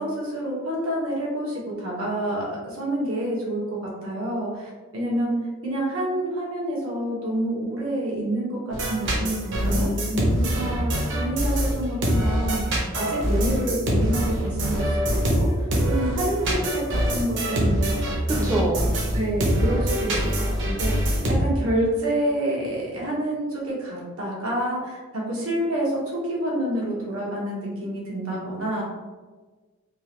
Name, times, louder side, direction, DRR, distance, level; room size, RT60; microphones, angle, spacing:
voice 1, 0.0-5.4 5.6-9.9 10.4-18.0 18.3-18.5 19.1-28.8, right 1 dB, 85° right, -4 dB, 1.2 m, -28 dB
sound 1, 8.7-21.4, equal, 55° right, 0.8 m, -24 dB
voice 2, 9.6-10.9 18.4-18.9, right 1 dB, 15° right, -5 dB, 0.5 m, -27 dB
3.7 x 2.5 x 3.0 m, 1.3 s
head